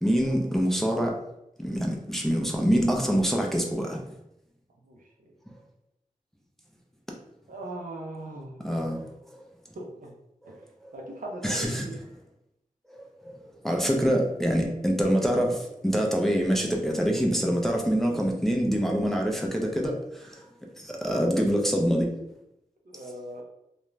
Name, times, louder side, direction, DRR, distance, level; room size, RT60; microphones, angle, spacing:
voice 1, 0.0-1.1 1.6-4.0 8.6-9.1 10.4-10.9 11.4-11.9 12.9-20.4 20.8-22.1, equal, ahead, 0 dB, 0.5 m, -25 dB
voice 2, 4.8-5.3 7.5-9.2 9.7-10.1 10.4-10.5 10.9-12.0 22.9-23.4, right 1 dB, 80° right, -1 dB, 0.6 m, -40 dB
2.5 x 2.2 x 3.1 m, 0.84 s
wide cardioid pair, 65°, 14 cm